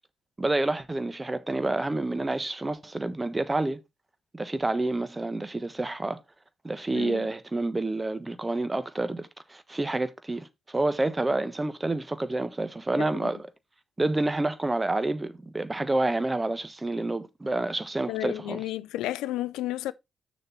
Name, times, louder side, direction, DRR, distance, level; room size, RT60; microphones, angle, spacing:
voice 1, 0.4-3.8 4.3-6.2 6.6-13.5 14.0-18.6, right 2 dB, 25° right, 1.2 m, -28 dB
voice 2, 6.9-7.3 13.0-13.3 18.1-19.9, left 14 dB, 75° left, 0.4 m, -32 dB
6.6 x 4.4 x 5.9 m
hypercardioid pair, 40°, 0 cm